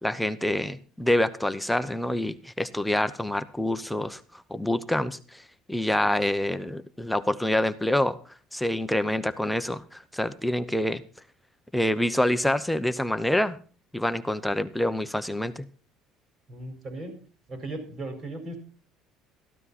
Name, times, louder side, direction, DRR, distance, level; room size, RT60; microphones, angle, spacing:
voice 1, 0.0-8.2 8.5-11.0 11.7-13.6 13.9-15.7, left 1 dB, 5° left, 11 dB, 0.7 m, -26 dB
voice 2, 16.5-17.2 17.5-18.6, right 2 dB, 40° right, 6 dB, 5.0 m, -37 dB
14.0 x 12.5 x 4.2 m, 0.38 s
cardioid pair, 115°, 0 cm